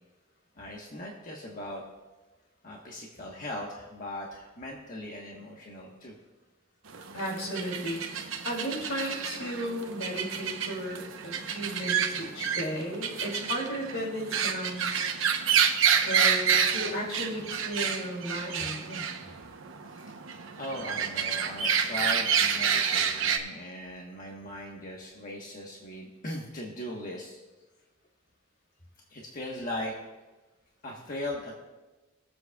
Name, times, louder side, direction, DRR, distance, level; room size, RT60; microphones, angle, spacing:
voice 1, 0.5-1.8 2.6-6.1 19.8-20.1 20.6-27.4 29.1-29.9 30.8-31.5, left 1 dB, 45° left, -2 dB, 1.2 m, -39 dB
sound 1, 6.9-23.4, right 7 dB, 75° right, 0.9 m, -29 dB
voice 2, 7.1-8.0 8.4-15.0 16.0-19.0, equal, 75° left, -1 dB, 2.9 m, -34 dB
22.5 x 7.8 x 2.3 m, 1.1 s
head